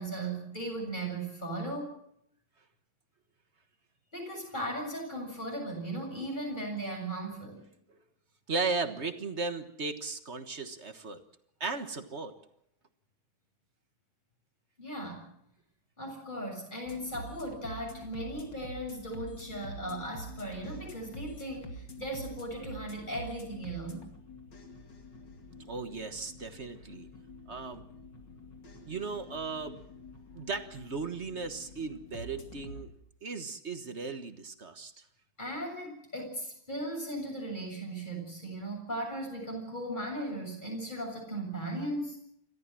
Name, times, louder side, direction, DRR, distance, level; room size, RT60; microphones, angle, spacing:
voice 1, 0.0-1.9 4.1-7.6 14.8-15.2 16.0-24.1 35.4-42.2, right 1 dB, 25° left, 1 dB, 7.6 m, -37 dB
voice 2, 8.5-11.2 11.6-12.3 25.7-27.1 27.5-27.8 28.8-29.8 30.3-32.9 33.2-34.9, right 4 dB, 40° right, 9 dB, 1.6 m, -36 dB
sound 1, 16.9-32.9, equal, 90° left, 3.1 m, -47 dB
28.5 x 14.0 x 7.6 m, 0.74 s
omnidirectional pair, 1.9 m